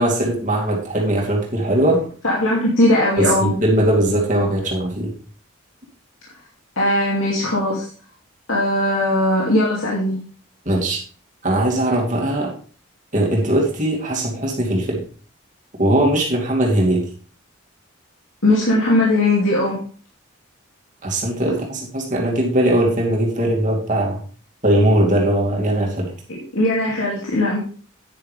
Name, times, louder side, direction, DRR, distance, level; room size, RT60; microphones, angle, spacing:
voice 1, 0.0-2.0 3.2-5.1 10.7-11.0 11.4-12.5 13.1-15.0 15.8-17.0 21.0-24.2 24.6-26.1, right 1 dB, 35° right, -2 dB, 2.6 m, -19 dB
voice 2, 2.2-3.6 6.8-7.9 8.5-10.2 18.4-19.8 26.3-27.6, left 1 dB, 75° left, -4 dB, 2.5 m, -19 dB
9.9 x 9.4 x 3.4 m, 0.42 s
head